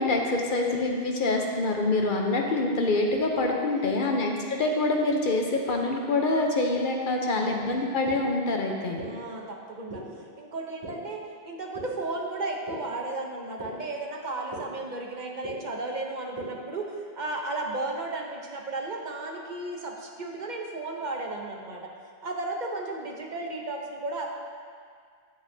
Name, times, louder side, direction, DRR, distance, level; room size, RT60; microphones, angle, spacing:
voice 1, 0.0-9.0, left 2 dB, 55° left, 1 dB, 0.8 m, -26 dB
voice 2, 3.7-4.2 7.3-8.0 9.0-10.0 10.4-21.9 22.2-24.3, right 2 dB, 50° right, 1 dB, 0.9 m, -34 dB
sound 1, 8.0-8.1 9.0-9.1 9.9-10.0 10.8-10.9 11.7-11.8 12.7-12.8 13.6-13.7 14.5-14.6 15.4-15.5 16.4-16.5, right 2 dB, 30° right, 2.3 m, -38 dB
9.3 x 8.0 x 2.7 m, 2.1 s
omnidirectional pair, 1.0 m